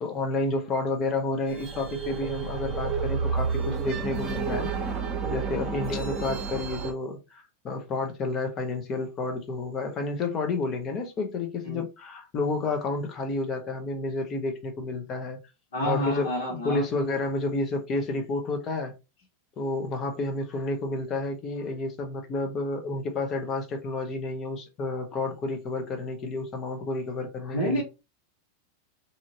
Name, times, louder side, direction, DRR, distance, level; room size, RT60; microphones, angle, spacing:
voice 1, 0.0-4.7 5.2-15.4 15.8-18.9 19.6-27.8, left 3 dB, 30° left, 0.8 m, -30 dB
sound 1, 1.5-6.9, right 5 dB, 25° right, 1.0 m, -30 dB
voice 2, 15.7-16.8 27.5-27.8, equal, 60° left, 1.3 m, -28 dB
2.8 x 2.6 x 2.8 m
figure-of-eight pair, 90°, 0 cm